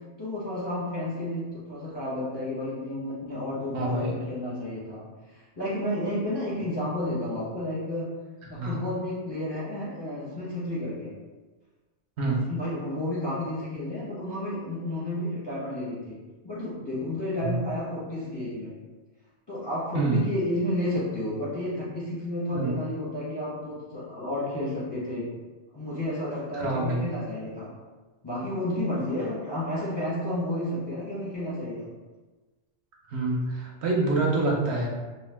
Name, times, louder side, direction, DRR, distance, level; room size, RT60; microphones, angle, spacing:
voice 1, 0.2-5.0 5.3-8.1 8.5-11.2 12.5-18.8 19.5-25.3 25.7-27.7 28.2-31.9, left 1 dB, 30° left, -8 dB, 0.5 m, -31 dB
voice 2, 3.7-4.2 8.5-8.8 12.2-12.5 17.4-17.6 19.9-20.2 22.5-22.7 26.5-27.1 33.1-34.9, right 2 dB, 70° right, -2 dB, 0.9 m, -26 dB
2.5 x 2.1 x 3.2 m, 1.3 s
omnidirectional pair, 1.2 m